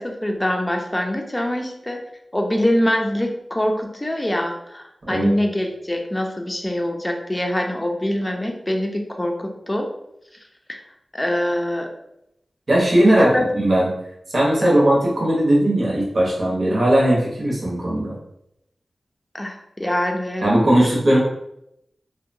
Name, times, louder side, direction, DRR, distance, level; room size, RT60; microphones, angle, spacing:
voice 1, 0.0-2.0 2.3-9.9 10.7-10.8 11.1-11.9 13.1-13.5 14.6-14.7 19.3-20.4, left 1 dB, 20° left, 3 dB, 0.5 m, -24 dB
voice 2, 12.7-13.3 13.5-13.9 14.3-18.1 20.4-21.2, right 1 dB, 60° right, -5 dB, 0.9 m, -18 dB
2.7 x 2.1 x 2.6 m, 0.80 s
cardioid pair, 45°, 0 cm